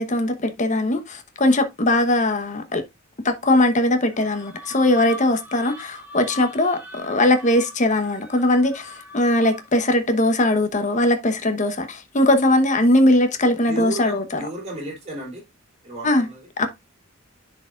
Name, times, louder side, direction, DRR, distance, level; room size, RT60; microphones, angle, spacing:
voice 1, 0.0-2.8 3.2-14.4 16.0-16.3 16.6-16.7, left 1 dB, 35° left, 1.0 m, -20 dB
sound 1, 4.1-9.8, left 1 dB, 10° right, 1.7 m, -41 dB
voice 2, 13.7-15.4 15.8-16.4, right 1 dB, 35° right, 3.6 m, -33 dB
10.0 x 4.7 x 2.4 m
head